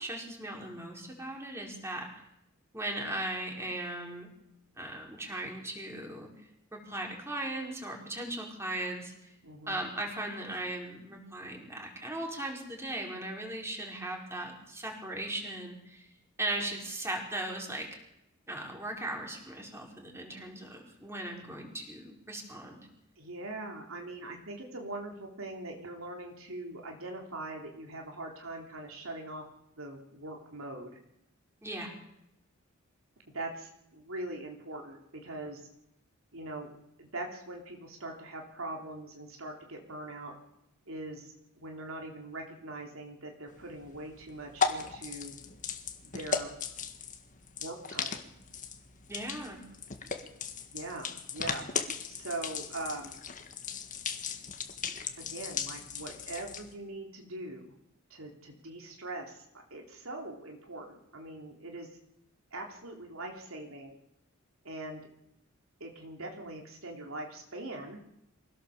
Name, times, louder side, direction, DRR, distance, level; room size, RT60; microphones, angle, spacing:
voice 1, 0.0-2.1 2.7-4.3 4.8-6.3 6.7-9.1 9.7-16.1 16.4-17.9 18.5-22.8 31.6-31.9 49.1-49.6, right 1 dB, 15° right, 0 dB, 4.6 m, -38 dB
voice 2, 9.4-9.8 23.2-29.5 29.8-31.0 33.3-35.6 36.3-36.7 37.0-40.3 40.9-45.4 46.0-46.5 47.6-48.2 50.7-51.6 52.1-53.2 55.2-57.7 58.1-59.4 59.7-61.9 62.5-63.9 64.6-65.0 65.8-68.0, right 2 dB, 75° right, 1 dB, 3.6 m, -42 dB
sound 1, 43.5-56.7, left 6 dB, 40° left, 1.8 m, -37 dB
24.5 x 17.0 x 7.2 m, 0.82 s
head